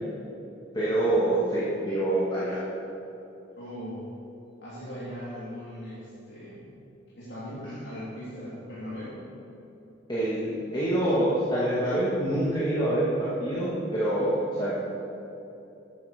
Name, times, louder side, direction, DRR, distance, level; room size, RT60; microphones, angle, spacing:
voice 1, 0.7-2.6 7.6-7.8 10.1-14.7, right 1 dB, 25° left, -9 dB, 2.0 m, -26 dB
voice 2, 3.6-4.0 4.6-6.6 7.2-9.3 11.6-11.7, equal, 60° left, -10 dB, 3.2 m, -39 dB
13.0 x 10.0 x 5.1 m, 3.0 s
head